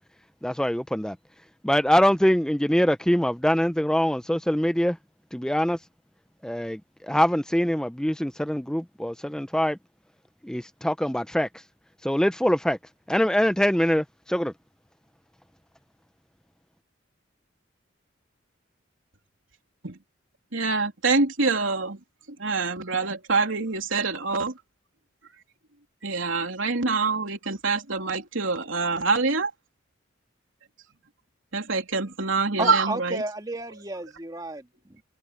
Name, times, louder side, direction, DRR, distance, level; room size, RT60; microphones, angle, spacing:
voice 1, 0.4-1.2 1.6-5.0 5.3-5.8 6.4-9.8 10.4-11.5 12.0-12.8 13.1-14.5, equal, 5° left, 0.6 m, -23 dB
voice 2, 20.5-22.0 22.4-24.5 26.0-29.5 31.5-33.2, right 4 dB, 80° right, 3.2 m, -25 dB
voice 3, 32.6-35.0, right 2 dB, 20° right, 2.3 m, -33 dB
head